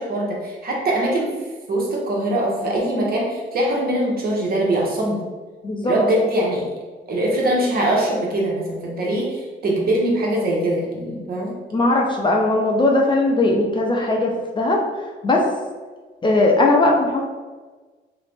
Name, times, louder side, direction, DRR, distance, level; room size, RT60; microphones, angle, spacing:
voice 1, 0.0-1.4 1.7-5.2 5.9-6.7 7.1-11.5, right 1 dB, 50° right, -2 dB, 0.8 m, -22 dB
voice 2, 5.6-6.0 11.7-14.8 15.2-15.4 16.2-17.2, left 2 dB, 25° left, -1 dB, 0.4 m, -18 dB
2.4 x 2.0 x 3.2 m, 1.3 s
cardioid pair, 90°, 20 cm